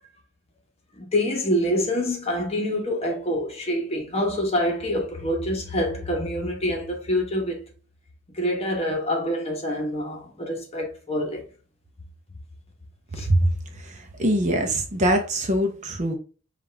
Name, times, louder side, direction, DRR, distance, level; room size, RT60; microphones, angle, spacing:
voice 1, 1.0-7.6 8.3-11.4 13.2-13.3, equal, 30° left, 1.0 m, -26 dB
voice 2, 13.9-16.1, right 1 dB, 35° right, 0.7 m, -23 dB
5.2 x 2.4 x 3.2 m
head